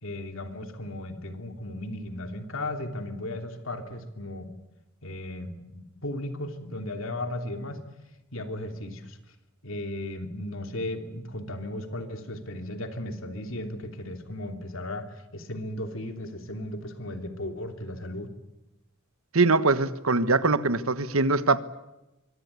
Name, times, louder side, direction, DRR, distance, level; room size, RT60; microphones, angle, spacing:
voice 1, 0.0-4.5 5.0-7.8 8.3-9.2 9.6-18.3, left 1 dB, 65° left, 6 dB, 3.0 m, -36 dB
voice 2, 19.3-21.6, right 3 dB, 80° right, 13 dB, 1.4 m, -22 dB
24.5 x 23.5 x 8.4 m, 0.96 s
head